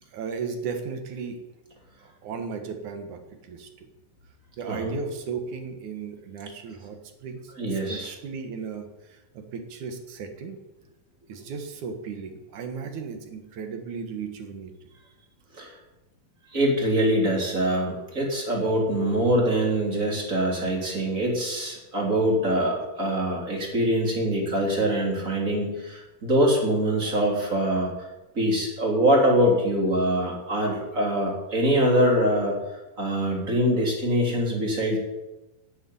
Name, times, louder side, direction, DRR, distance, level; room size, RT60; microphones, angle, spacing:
voice 1, 0.1-1.4 2.0-3.9 4.6-10.6 11.3-14.7, right 5 dB, 60° right, 5 dB, 2.8 m, -35 dB
voice 2, 7.6-8.1 15.5-15.7 16.5-28.1 28.3-32.6 33.0-35.0, right 1 dB, 20° right, -1 dB, 3.5 m, -24 dB
10.5 x 10.0 x 9.5 m, 1.0 s
omnidirectional pair, 4.1 m